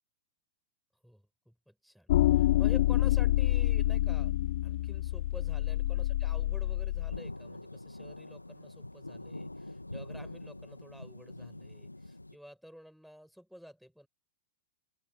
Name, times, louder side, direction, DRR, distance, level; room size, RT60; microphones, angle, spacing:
voice 1, 1.0-4.3 4.6-14.1, equal, ahead, 7.4 m, -51 dB
sound 1, 2.1-7.2, left 14 dB, 55° left, 0.4 m, -27 dB
sound 2, 7.1-12.3, left 2 dB, 85° left, 2.7 m, -44 dB
open air
figure-of-eight pair, 95°, 0 cm